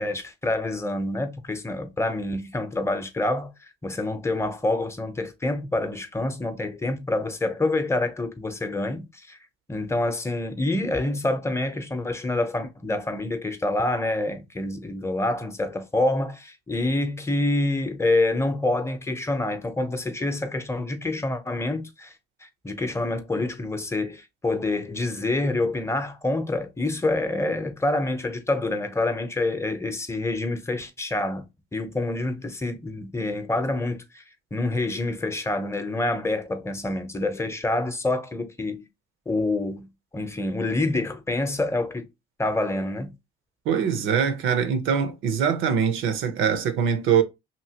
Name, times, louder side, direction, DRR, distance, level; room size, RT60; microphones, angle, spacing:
voice 1, 0.0-3.5 3.8-9.4 9.7-22.1 22.4-31.4 31.7-34.2 34.5-38.9 39.3-42.1 42.4-43.1, left 2 dB, 15° left, 0.6 m, -27 dB
voice 2, 43.7-47.2, right 7 dB, 80° right, 0.7 m, -23 dB
2.9 x 2.7 x 2.8 m
cardioid pair, 90°, 20 cm